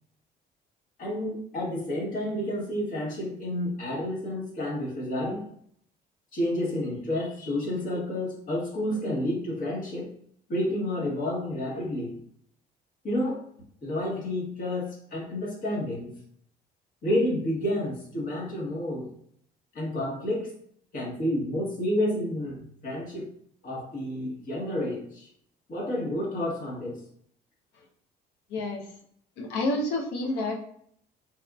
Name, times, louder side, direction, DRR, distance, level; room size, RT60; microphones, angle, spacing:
voice 1, 1.0-5.4 6.3-10.1 10.5-12.2 13.0-13.4 13.8-16.1 17.0-19.1 19.7-20.5 20.9-23.3 23.6-25.3 25.7-27.0, left 1 dB, 55° left, -3 dB, 1.2 m, -30 dB
voice 2, 28.5-28.8 29.4-30.6, left 2 dB, 80° left, 2 dB, 0.6 m, -29 dB
3.4 x 2.4 x 2.3 m, 0.65 s
cardioid pair, 110°, 17 cm